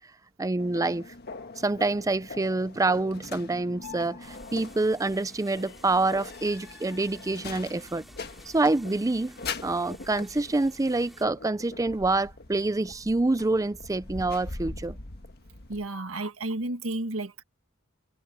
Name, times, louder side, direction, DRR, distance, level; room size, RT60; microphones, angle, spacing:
voice 1, 0.4-1.1 1.6-8.0 8.5-9.4 9.6-15.0, right 2 dB, 15° right, 0.5 m, -26 dB
sound 1, 0.6-15.9, left 4 dB, 50° left, 1.5 m, -42 dB
sound 2, 4.2-11.3, equal, ahead, 3.5 m, -53 dB
voice 2, 15.7-17.4, right 2 dB, 90° right, 1.8 m, -32 dB
head